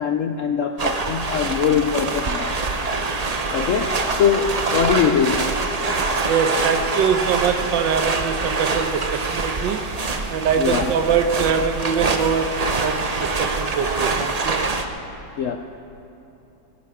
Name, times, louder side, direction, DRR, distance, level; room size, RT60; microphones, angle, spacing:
voice 1, 0.0-2.6 3.5-5.5 10.6-10.9 15.4-15.6, left 7 dB, 70° left, 5 dB, 0.7 m, -22 dB
sound 1, 0.8-14.8, right 3 dB, 60° right, 0.4 m, -25 dB
voice 2, 6.3-9.9 10.3-14.7, right 7 dB, 80° right, 8 dB, 1.6 m, -23 dB
17.5 x 16.0 x 4.9 m, 2.9 s
omnidirectional pair, 2.0 m